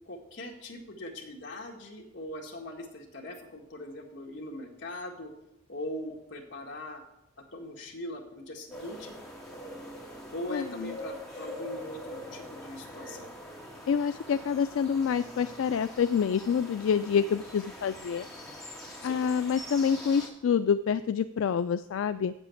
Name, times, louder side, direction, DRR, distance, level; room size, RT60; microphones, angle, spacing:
voice 1, 0.1-5.3 5.7-7.0 7.5-9.2 10.3-13.3 19.0-19.2, left 1 dB, 60° left, 1 dB, 1.8 m, -41 dB
sound 1, 8.7-20.3, left 1 dB, 5° left, 1.9 m, -44 dB
voice 2, 10.5-10.9 13.9-18.3 19.0-22.3, left 7 dB, 80° left, 12 dB, 0.3 m, -27 dB
7.4 x 7.3 x 8.3 m, 0.85 s
head